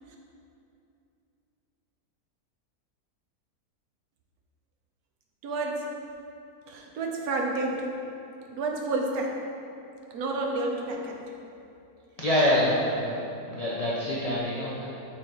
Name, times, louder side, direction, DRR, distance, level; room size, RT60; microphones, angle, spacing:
voice 1, 5.4-5.9 6.7-7.9 8.5-9.4 10.1-11.3, right 2 dB, 70° right, 0 dB, 1.1 m, -30 dB
voice 2, 12.2-14.8, left 1 dB, 45° left, -8 dB, 0.4 m, -26 dB
6.1 x 3.9 x 4.5 m, 2.7 s
omnidirectional pair, 1.7 m